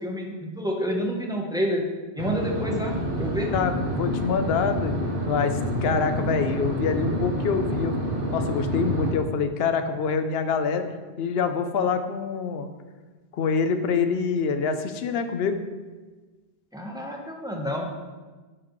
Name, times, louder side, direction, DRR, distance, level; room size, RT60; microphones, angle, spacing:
voice 1, 0.0-1.8 2.1-3.5 16.7-17.9, equal, 5° right, 0 dB, 0.8 m, -28 dB
sound 1, 2.2-9.1, equal, 65° right, 1.2 m, -28 dB
voice 2, 3.5-4.9 5.3-8.0 8.3-10.9 11.2-12.7 13.3-15.6, left 5 dB, 75° left, 8 dB, 0.8 m, -25 dB
9.5 x 4.9 x 3.0 m, 1.3 s
omnidirectional pair, 1.0 m